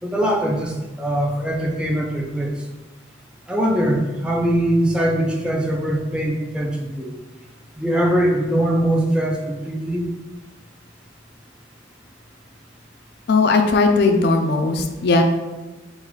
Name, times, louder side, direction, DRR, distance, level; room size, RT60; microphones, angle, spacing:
voice 1, 0.0-2.7 3.5-7.1 7.8-10.1, right 1 dB, 5° right, -1 dB, 0.5 m, -22 dB
voice 2, 13.3-15.2, left 3 dB, 55° left, 5 dB, 0.4 m, -17 dB
3.9 x 2.4 x 4.5 m, 1.2 s
head